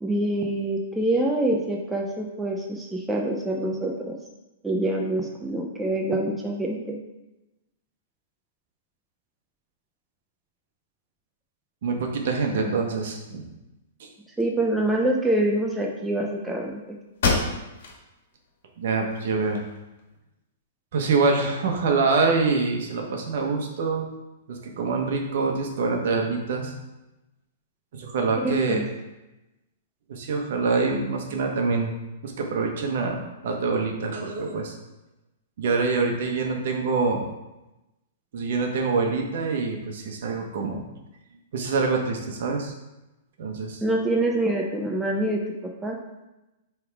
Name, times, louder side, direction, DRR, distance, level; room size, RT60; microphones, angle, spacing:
voice 1, 0.0-4.2 4.6-7.0 14.4-17.0 28.4-28.8 43.8-45.4 45.8-46.0, right 1 dB, 5° right, -1 dB, 0.6 m, -25 dB
voice 2, 11.8-13.4 14.0-14.1 18.8-19.6 20.9-24.1 24.5-26.8 27.9-28.9 30.1-31.9 32.2-34.7 35.6-37.3 38.3-40.8 41.5-42.7 43.4-43.8, right 4 dB, 60° right, 2 dB, 1.2 m, -25 dB
sound 1, 16.6-16.7 17.2-18.0 18.5-18.6 19.1-20.0, left 3 dB, 65° left, 1.5 m, -27 dB
7.9 x 3.5 x 3.6 m, 1.0 s
hypercardioid pair, 155°, 0 cm